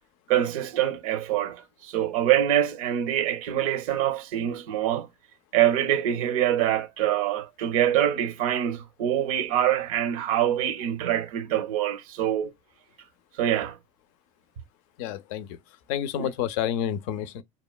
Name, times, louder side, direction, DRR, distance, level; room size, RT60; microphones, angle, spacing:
voice 1, 0.3-5.1 5.5-12.5 13.4-13.8 16.2-16.3, right 11 dB, 80° right, 0.6 m, -25 dB
voice 2, 15.0-15.6 15.9-17.4, left 10 dB, 70° left, 0.4 m, -29 dB
2.9 x 2.1 x 2.2 m
supercardioid pair, 100°, 18 cm